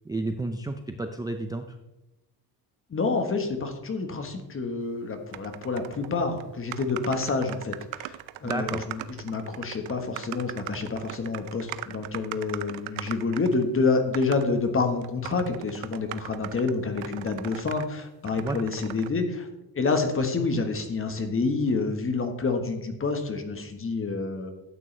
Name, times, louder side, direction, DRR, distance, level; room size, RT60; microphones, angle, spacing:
voice 1, 0.1-1.8 8.4-8.9 18.4-18.6, right 2 dB, 10° right, 6 dB, 0.5 m, -31 dB
voice 2, 2.9-19.5 19.7-24.5, left 4 dB, 30° left, 6 dB, 1.4 m, -28 dB
sound 1, 5.3-6.1 6.4-6.5 6.7-13.7 14.1-14.5 15.0-17.9 18.2-19.1, right 15 dB, 85° right, 0.6 m, -39 dB
12.5 x 8.6 x 3.3 m, 0.94 s
cardioid pair, 125°, 45 cm